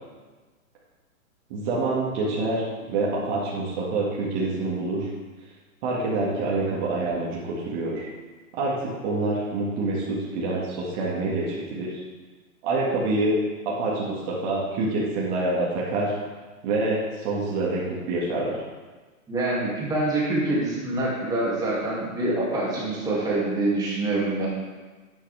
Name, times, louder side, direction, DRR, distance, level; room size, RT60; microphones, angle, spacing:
voice 1, 1.5-2.6 2.9-5.1 5.8-8.1 8.5-12.0 12.6-13.4 13.7-16.1 16.6-18.6, right 2 dB, 35° right, -6 dB, 2.0 m, -26 dB
voice 2, 19.3-24.5, right 2 dB, 10° right, -6 dB, 2.5 m, -25 dB
10.0 x 9.3 x 3.5 m, 1.3 s
hypercardioid pair, 150°, 42 cm